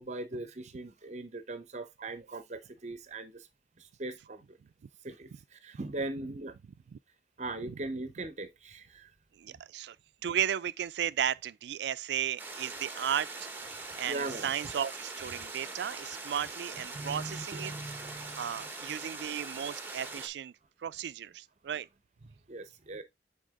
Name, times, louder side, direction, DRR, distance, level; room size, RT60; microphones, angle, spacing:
voice 1, 0.0-3.5 3.8-4.6 5.0-6.5 7.4-9.1 14.1-14.5 16.9-18.4 22.5-23.0, right 2 dB, 40° right, 0.7 m, -40 dB
voice 2, 9.3-10.0 10.2-13.3 14.0-17.7 18.4-20.5 20.8-21.9, right 9 dB, 70° right, 0.3 m, -34 dB
sound 1, 12.4-20.3, right 3 dB, 10° right, 1.0 m, -42 dB
6.4 x 4.2 x 3.5 m
head